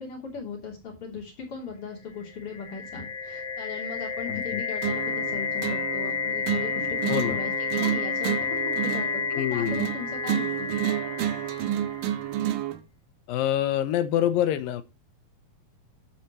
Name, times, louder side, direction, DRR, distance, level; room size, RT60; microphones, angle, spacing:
voice 1, 0.0-10.7, left 5 dB, 40° left, 3.7 m, -38 dB
sound 1, 2.3-12.1, left 6 dB, 55° left, 2.9 m, -31 dB
voice 2, 4.3-4.6 7.1-7.4 9.3-9.9 13.3-14.8, left 11 dB, 75° left, 2.4 m, -26 dB
sound 2, 4.8-12.8, right 11 dB, 75° right, 2.5 m, -30 dB
11.0 x 8.0 x 3.1 m
omnidirectional pair, 4.4 m